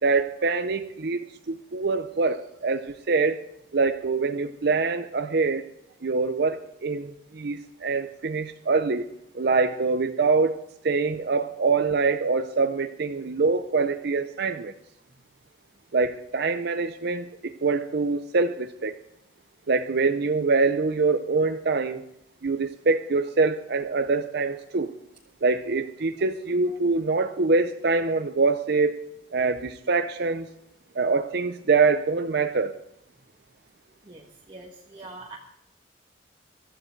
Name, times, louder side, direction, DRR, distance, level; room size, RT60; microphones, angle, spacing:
voice 1, 0.0-3.4 3.7-5.6 6.0-9.1 9.3-10.6 10.8-14.7 15.9-18.9 19.7-22.0 22.4-24.9 25.4-29.0 29.3-30.5 31.0-32.7, right 4 dB, 60° right, 8 dB, 0.6 m, -24 dB
voice 2, 34.0-35.4, right 2 dB, 25° right, -1 dB, 1.3 m, -44 dB
15.5 x 12.5 x 4.6 m, 0.78 s
head